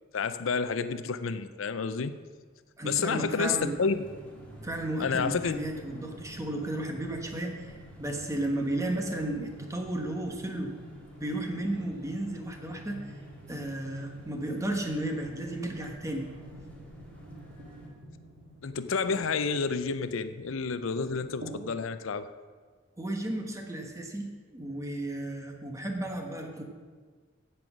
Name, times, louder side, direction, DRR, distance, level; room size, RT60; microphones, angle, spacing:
voice 1, 0.1-2.2 2.8-4.0 5.0-5.6 18.6-22.3, left 5 dB, 85° left, 12 dB, 0.5 m, -30 dB
voice 2, 2.8-3.7 4.6-10.7 11.2-13.1 13.5-16.3 23.0-26.6, right 1 dB, 15° right, 3 dB, 1.3 m, -33 dB
sound 1, 2.9-21.6, equal, 65° right, 2.9 m, -49 dB
sound 2, 3.4-17.9, equal, 5° left, 1.9 m, -54 dB
15.5 x 5.6 x 6.2 m, 1.5 s
head